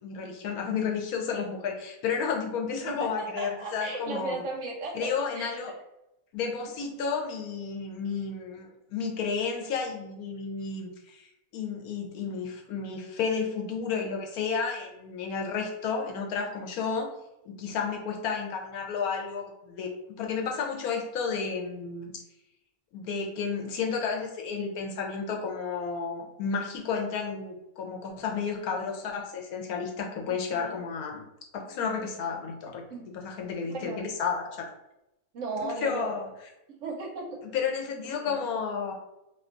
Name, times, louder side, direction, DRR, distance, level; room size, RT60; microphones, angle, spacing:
voice 1, 0.0-4.3 4.9-5.7 6.3-11.3 11.5-17.1 17.4-22.1 22.9-31.3 31.5-32.8 33.2-33.9 34.2-34.7 35.5-36.2 37.5-38.9, left 5 dB, 85° left, 2 dB, 1.1 m, -32 dB
voice 2, 2.9-5.5 30.3-30.8 32.9-33.1 33.6-34.0 35.3-36.1 36.8-37.4 38.0-38.4, right 3 dB, 65° right, 0 dB, 1.0 m, -36 dB
2.7 x 2.3 x 3.7 m, 0.91 s
omnidirectional pair, 1.5 m